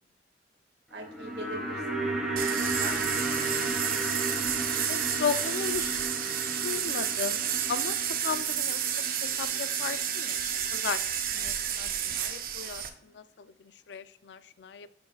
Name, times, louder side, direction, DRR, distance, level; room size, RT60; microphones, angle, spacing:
sound 1, 0.9-11.2 11.4-11.5, right 2 dB, ahead, 1.5 m, -34 dB
voice 1, 0.9-2.3 2.8-3.9, right 2 dB, 70° right, 2 dB, 1.9 m, -43 dB
sound 2, 2.4-12.9, right 9 dB, 50° right, 0.7 m, -31 dB
voice 2, 4.9-6.0 6.6-7.4 7.7-8.0 8.2-9.0 9.4-12.8 13.1-13.5 13.9-14.9, left 6 dB, 70° left, 14 dB, 0.4 m, -35 dB
10.5 x 6.9 x 2.3 m, 0.69 s
head